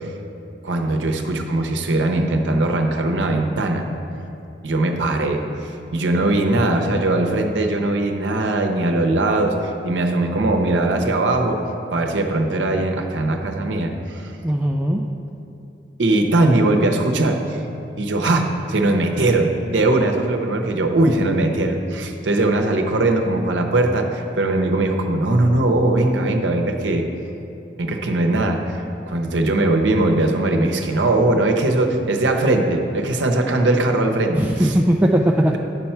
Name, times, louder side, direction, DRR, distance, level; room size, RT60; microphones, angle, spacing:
voice 1, 0.6-3.9 4.6-11.6 11.9-14.3 16.0-17.6 18.0-27.1 27.8-34.8, right 2 dB, 85° right, 4 dB, 0.7 m, -20 dB
voice 2, 14.4-15.0 34.3-35.6, right 1 dB, 10° right, 0 dB, 0.3 m, -18 dB
9.5 x 4.4 x 5.7 m, 2.8 s
head